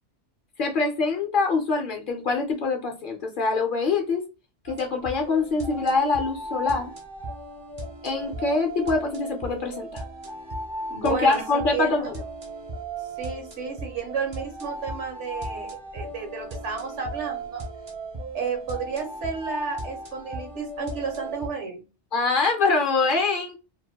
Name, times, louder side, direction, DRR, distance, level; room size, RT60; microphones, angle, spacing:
voice 1, 0.6-4.2 4.6-6.9 8.0-10.0 11.0-12.2 22.1-23.6, left 4 dB, 55° left, 0.6 m, -24 dB
sound 1, 4.7-21.5, right 2 dB, 35° right, 0.5 m, -36 dB
voice 2, 10.9-11.4 11.7-12.1 13.2-17.6 18.3-21.8, right 5 dB, 80° right, 1.3 m, -32 dB
2.8 x 2.1 x 2.7 m
omnidirectional pair, 1.2 m